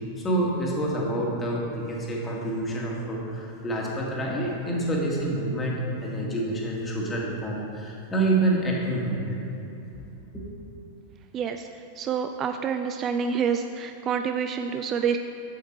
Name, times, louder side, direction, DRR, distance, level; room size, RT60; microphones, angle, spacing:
voice 1, 0.2-9.4 10.3-10.5, right 1 dB, 15° left, -3 dB, 1.8 m, -27 dB
voice 2, 12.0-15.2, right 7 dB, 30° right, 7 dB, 0.4 m, -27 dB
8.4 x 7.9 x 4.5 m, 3.0 s
figure-of-eight pair, 90°, 0 cm